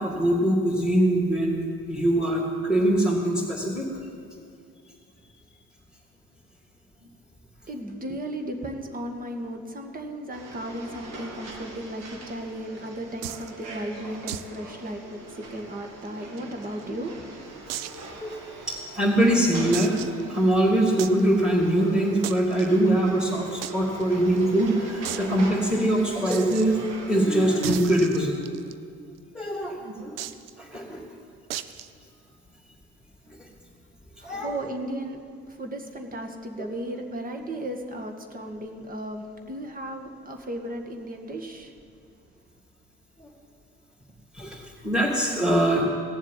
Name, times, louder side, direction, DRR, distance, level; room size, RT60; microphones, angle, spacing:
voice 1, 0.0-3.8 18.2-18.3 18.7-20.0 20.3-26.8 27.1-28.6 29.3-30.1 30.6-31.0 34.2-34.5 43.2-43.3 44.3-45.8, right 1 dB, ahead, -5 dB, 3.1 m, -23 dB
voice 2, 7.7-17.3 34.2-35.2 35.5-41.7, right 1 dB, 30° right, 4 dB, 2.1 m, -35 dB
sound 1, 10.3-27.8, right 2 dB, 60° right, 2.6 m, -42 dB
sound 2, 13.2-13.5 14.3-14.6 14.8-14.9 15.3-15.4 16.1-16.8 17.7-18.1 18.6-18.7 19.7-20.2 21.0-21.2 22.2-22.7 23.6-23.7 24.0-24.1 24.4-24.5 25.0-25.3 26.3-26.7 27.6-28.7 30.2-30.5 31.5-31.9, right 11 dB, 80° right, 0.6 m, -34 dB
17.5 x 7.3 x 9.2 m, 2.3 s
hypercardioid pair, 60°, 29 cm